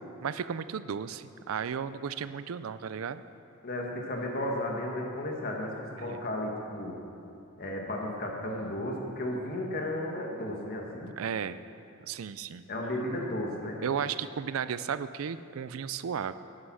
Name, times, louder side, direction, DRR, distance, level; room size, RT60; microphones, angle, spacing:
voice 1, 0.2-3.2 6.0-6.2 11.2-11.6 12.0-12.7 13.8-16.3, right 7 dB, 85° right, 14 dB, 0.4 m, -34 dB
voice 2, 3.6-7.0 7.6-11.1 12.7-13.8, left 1 dB, 45° left, 0 dB, 1.8 m, -34 dB
11.0 x 9.7 x 6.2 m, 2.8 s
head